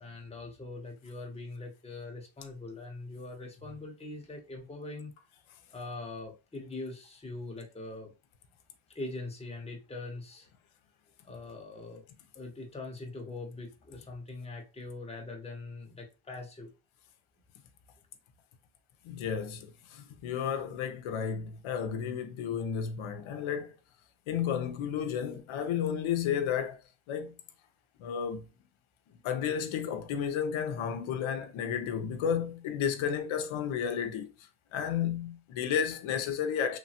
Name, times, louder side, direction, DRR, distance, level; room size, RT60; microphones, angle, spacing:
voice 1, 0.0-5.1 5.7-8.1 8.9-10.5 11.2-12.0 12.3-16.7, left 2 dB, 15° left, 0.8 m, -42 dB
voice 2, 19.0-23.8 24.3-26.8 27.1-27.3 28.0-28.4 29.2-34.3 34.7-36.8, left 8 dB, 85° left, 0.6 m, -32 dB
3.1 x 2.2 x 2.7 m
cardioid pair, 105°, 47 cm